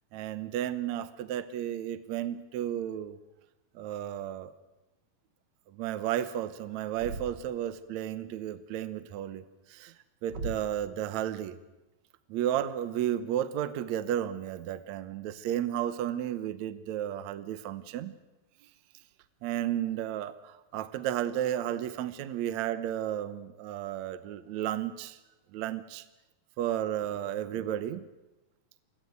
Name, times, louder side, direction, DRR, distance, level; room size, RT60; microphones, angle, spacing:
voice 1, 0.1-3.2 3.8-4.5 5.7-9.9 10.2-11.6 12.3-18.1 19.4-25.2 25.5-26.1 26.6-28.0, right 11 dB, 70° right, 13 dB, 1.9 m, -33 dB
Thump thud, 6.9-7.6 10.3-10.8, right 3 dB, 85° right, 0.9 m, -39 dB
23.5 x 16.0 x 9.4 m, 1.0 s
omnidirectional pair, 4.0 m